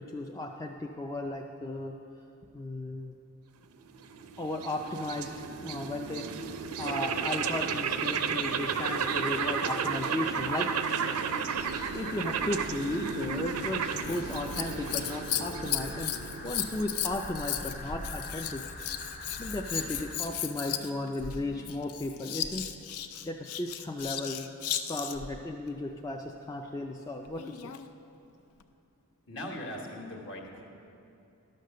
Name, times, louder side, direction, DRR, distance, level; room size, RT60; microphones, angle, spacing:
voice 1, 0.0-1.9 2.5-3.2 4.4-5.3 5.6-6.3 6.8-10.7 11.9-16.1 16.4-18.6 19.4-22.7 23.2-24.5 24.9-27.8, left 1 dB, 15° left, 1 dB, 0.3 m, -35 dB
sound 1, 3.8-17.2, right 6 dB, 85° right, 0.5 m, -33 dB
sound 2, 11.6-20.2, left 2 dB, 40° left, 0.8 m, -43 dB
Scissors, 14.0-25.3 27.3-27.9 28.6-28.7, left 10 dB, 80° left, 0.5 m, -36 dB
voice 2, 29.3-30.6, left 1 dB, 55° left, 0 dB, 1.3 m, -40 dB
11.5 x 6.6 x 6.5 m, 2.7 s
head